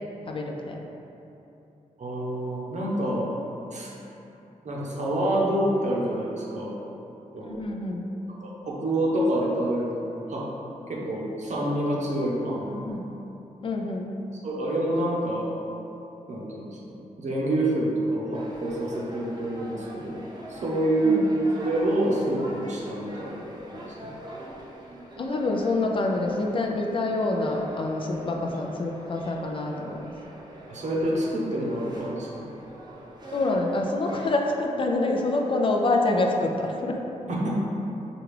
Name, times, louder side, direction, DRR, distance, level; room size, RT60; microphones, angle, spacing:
voice 1, 0.2-0.8 7.4-8.0 12.7-13.1 13.6-14.1 21.0-21.3 25.2-30.1 33.3-37.0, left 2 dB, 40° left, 1 dB, 0.4 m, -26 dB
voice 2, 2.0-3.3 3.7-3.9 4.6-6.8 7.3-7.6 8.3-10.0 10.3-10.5 10.9-12.7 14.4-15.5 16.3-20.2 20.5-21.3 21.6-23.8 30.7-32.4 37.3-37.6, right 1 dB, 65° right, -4 dB, 0.8 m, -27 dB
sound 1, 18.3-34.3, right 1 dB, 30° right, 0.6 m, -43 dB
4.9 x 2.3 x 3.2 m, 2.9 s
cardioid pair, 90°, 13 cm